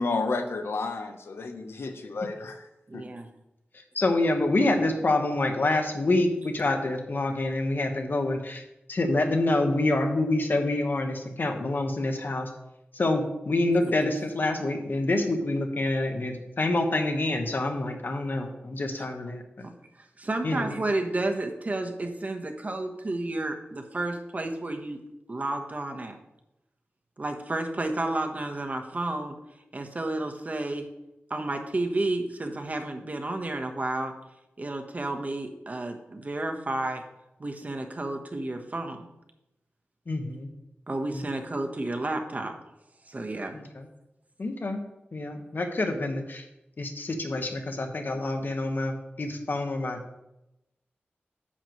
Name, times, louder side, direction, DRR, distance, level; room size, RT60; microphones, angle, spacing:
voice 1, 0.0-2.7 2.9-3.0, left 3 dB, 75° left, 6 dB, 0.9 m, -31 dB
voice 2, 2.9-3.3 13.8-13.9 20.2-25.0 25.3-26.2 27.2-29.4 29.7-30.9 31.3-34.1 34.6-37.0 37.4-39.1 40.9-42.6 43.1-43.6, right 2 dB, 40° right, 4 dB, 1.1 m, -31 dB
voice 3, 3.9-8.6 8.9-12.5 12.9-19.4 20.4-20.7 40.1-40.5 43.5-43.9 44.4-44.8 45.1-46.4 46.8-50.0, left 2 dB, 55° left, 5 dB, 1.2 m, -27 dB
10.0 x 7.8 x 3.1 m, 0.90 s
wide cardioid pair, 80°, 4 cm